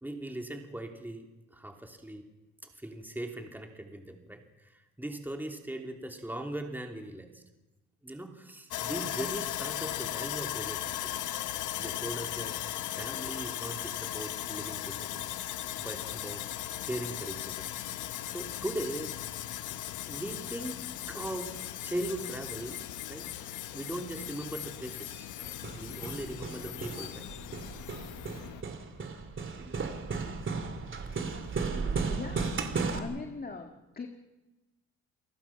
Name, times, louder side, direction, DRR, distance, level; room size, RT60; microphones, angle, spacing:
voice 1, 0.0-2.2 2.8-7.3 8.0-11.3 11.8-12.5 12.9-16.4 16.8-19.2 19.7-20.8 21.1-21.6 21.8-22.8 23.1-23.3 23.7-25.3 25.7-27.3, right 1 dB, 5° right, 3 dB, 2.9 m, -39 dB
Sawing, 8.7-28.6, left 13 dB, 85° left, 1.1 m, -38 dB
Hammer, 25.4-33.0, right 4 dB, 40° right, 3.0 m, -35 dB
voice 2, 31.7-32.7 32.9-34.1, left 4 dB, 30° left, 5 dB, 2.1 m, -41 dB
29.0 x 19.0 x 5.9 m, 1.1 s
cardioid pair, 90°, 30 cm